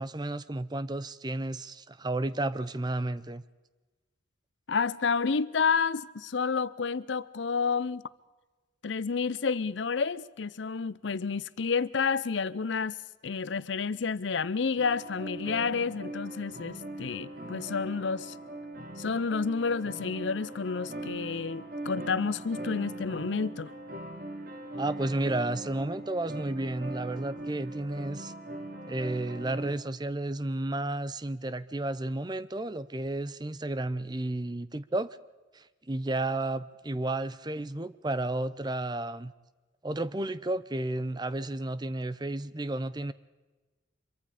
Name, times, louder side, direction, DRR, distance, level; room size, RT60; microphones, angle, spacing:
voice 1, 0.0-3.4 24.8-28.3 28.8-35.2 35.5-39.3 39.8-43.1, right 2 dB, 20° right, 0.6 m, -32 dB
voice 2, 4.7-8.0 8.8-13.0 13.2-18.3 19.0-23.7, left 5 dB, 75° left, 0.6 m, -30 dB
sound 1, 14.8-29.7, right 1 dB, 50° right, 2.3 m, -41 dB
25.5 x 23.0 x 5.0 m
head